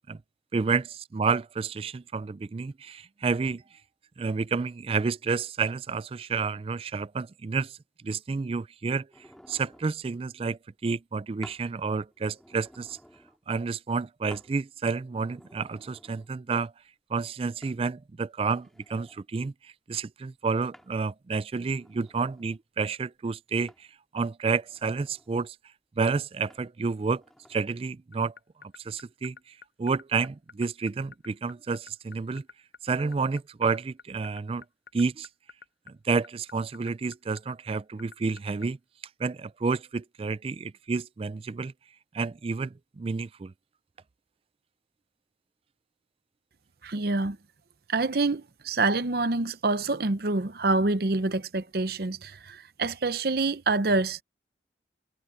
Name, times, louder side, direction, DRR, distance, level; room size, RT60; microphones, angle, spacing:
voice 1, 0.5-3.6 4.2-7.8 8.0-9.1 9.5-13.0 13.5-16.7 17.1-19.5 19.9-23.7 24.1-25.6 26.0-27.2 27.5-28.3 28.8-29.4 29.8-32.4 32.8-34.6 34.9-35.3 36.0-38.8 39.2-41.7 42.1-43.5, right 4 dB, 30° right, 0.3 m, -30 dB
sound 1, 9.1-9.9 11.4-11.7 12.1-13.4 14.3-14.5 15.1-16.3 17.6-17.8 18.4-19.3 20.7-21.0 21.6-22.6 23.7-23.9 24.6-25.3 26.5-26.7 27.1-27.6, equal, ahead, 4.3 m, -53 dB
sound 2, 28.1-38.6, left 5 dB, 70° left, 7.4 m, -47 dB
voice 2, 46.8-47.4 47.9-54.2, right 3 dB, 55° right, 0.8 m, -26 dB
head